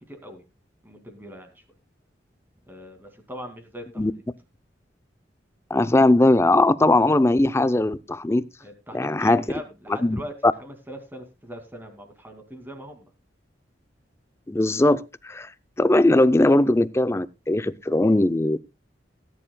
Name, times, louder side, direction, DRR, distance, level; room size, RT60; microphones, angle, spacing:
voice 1, 0.1-0.4 0.8-1.5 2.7-4.2 8.6-10.3 10.6-13.1, equal, 10° right, 2.2 m, -40 dB
voice 2, 5.7-8.4 8.9-9.4 10.0-10.2 14.5-15.5 15.8-18.6, left 2 dB, 15° left, 0.5 m, -19 dB
18.5 x 10.0 x 2.2 m
head